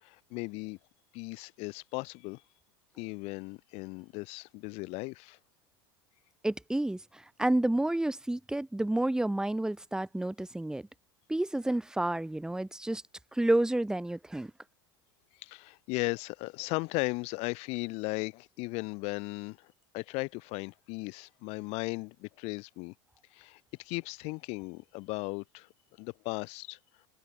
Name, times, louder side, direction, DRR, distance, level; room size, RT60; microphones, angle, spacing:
voice 1, 0.0-0.8 1.1-2.4 3.0-5.4 15.4-19.7 19.9-22.9 23.3-25.7 26.0-26.8, left 27 dB, 60° left, 2.0 m, -36 dB
voice 2, 6.4-10.9 11.3-13.0 13.3-14.5, right 1 dB, 5° right, 3.2 m, -30 dB
hypercardioid pair, 95°, 12 cm